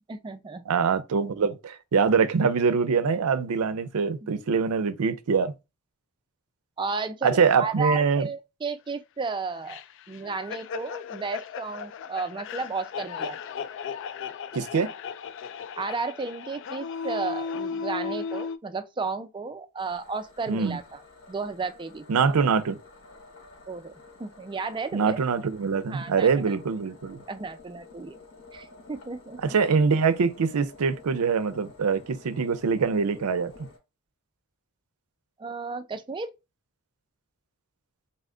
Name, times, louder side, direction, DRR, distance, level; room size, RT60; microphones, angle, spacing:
voice 1, 0.1-0.8 6.8-9.8 10.1-13.4 15.8-21.0 21.3-22.1 23.7-25.2 25.9-26.6 27.3-28.2 28.5-29.6 35.4-36.3, right 4 dB, 20° right, 0.4 m, -33 dB
voice 2, 0.7-5.5 7.2-8.3 14.5-14.9 20.5-20.8 22.1-22.8 24.9-27.2 29.4-33.5, right 5 dB, 75° right, 0.5 m, -24 dB
sound 1, 9.7-18.6, left 6 dB, 60° left, 0.3 m, -36 dB
sound 2, 19.8-33.8, left 3 dB, 75° left, 2.3 m, -51 dB
4.1 x 2.1 x 3.7 m
head